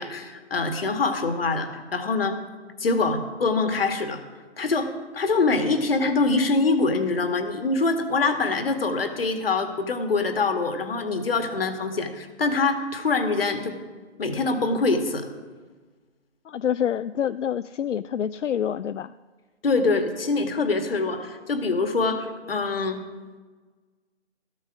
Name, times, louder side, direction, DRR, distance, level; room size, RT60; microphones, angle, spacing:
voice 1, 0.0-2.4 2.8-4.2 4.6-13.8 14.2-15.3 19.6-23.0, left 3 dB, 55° left, 7 dB, 1.8 m, -24 dB
voice 2, 16.4-19.1, left 9 dB, 80° left, 14 dB, 0.5 m, -27 dB
15.0 x 13.0 x 4.9 m, 1.4 s
figure-of-eight pair, 160°, 36 cm